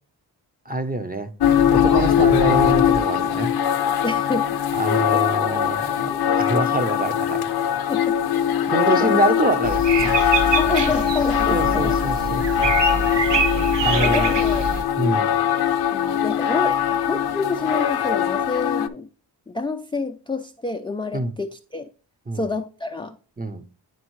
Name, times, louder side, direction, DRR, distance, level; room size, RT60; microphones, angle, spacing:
voice 1, 0.7-1.3 1.7-3.5 4.8-6.1 6.4-7.5 8.6-10.2 11.5-12.7 13.8-14.4 15.0-15.3 21.1-21.3 22.3-22.4 23.4-23.6, right 2 dB, 20° right, 0.8 m, -25 dB
sound 1, 1.4-18.9, left 9 dB, 55° left, 0.6 m, -21 dB
voice 2, 4.0-4.5 4.8-5.6 6.1-6.5 7.9-8.2 8.5-9.2 10.6-12.0 13.4-13.6 14.0-14.7 15.9-16.8 17.1-19.1 19.5-21.9 22.3-23.2, left 3 dB, 10° left, 0.4 m, -28 dB
sound 2, 9.6-14.8, right 4 dB, 75° right, 0.9 m, -25 dB
10.0 x 3.5 x 3.1 m
cardioid pair, 55°, 44 cm